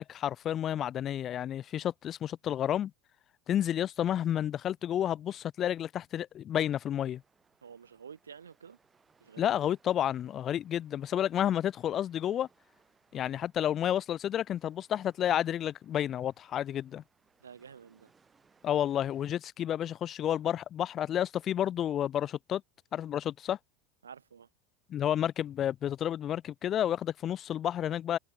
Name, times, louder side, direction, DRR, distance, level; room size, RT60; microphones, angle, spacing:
voice 1, 0.0-2.9 3.5-7.2 9.4-12.5 13.1-17.0 18.6-22.6 22.9-23.6 24.9-28.2, left 10 dB, 40° left, 0.4 m, -31 dB
sound 1, 6.5-19.3, right 5 dB, 20° right, 7.1 m, -69 dB
voice 2, 7.6-8.8 9.2-9.5 13.1-13.3 17.4-18.1 24.0-24.5, right 7 dB, 90° right, 0.8 m, -50 dB
hypercardioid pair, 80°, 0 cm